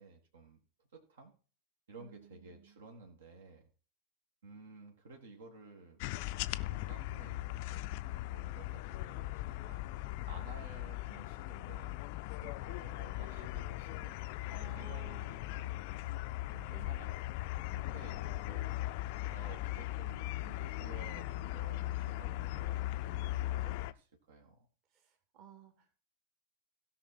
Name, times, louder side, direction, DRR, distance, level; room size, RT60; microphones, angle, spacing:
voice 1, 0.0-1.3 1.9-3.7 4.4-6.1 6.6-9.3 9.6-9.8 10.3-12.0 12.4-14.2 14.8-15.9 16.5-17.2 17.6-18.8 19.3-24.7, right 3 dB, 65° right, 3 dB, 1.7 m, -54 dB
voice 2, 2.0-2.8 14.5-15.4 16.7-17.0 24.9-25.7, right 8 dB, 40° right, 6 dB, 2.0 m, -56 dB
sound 1, 6.0-23.9, left 16 dB, 45° left, 0.5 m, -39 dB
16.5 x 5.7 x 4.2 m, 0.38 s
figure-of-eight pair, 90°, 0 cm